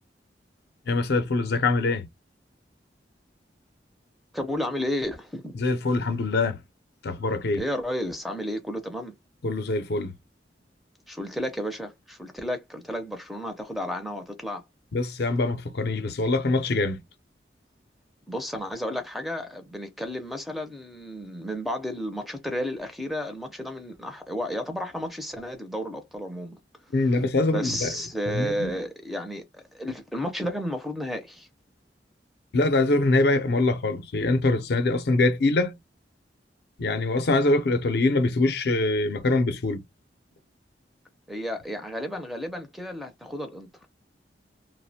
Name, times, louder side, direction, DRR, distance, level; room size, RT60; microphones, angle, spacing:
voice 1, 0.9-2.1 5.6-6.6 7.0-7.6 9.4-10.1 14.9-17.0 26.9-27.9 28.3-28.7 32.5-35.8 36.8-39.8, left 2 dB, 65° left, 0.5 m, -24 dB
voice 2, 4.3-5.6 7.5-9.2 11.1-14.6 18.3-26.6 27.0-27.2 27.5-31.5 41.3-43.7, equal, ahead, 0.4 m, -32 dB
2.4 x 2.0 x 2.7 m
head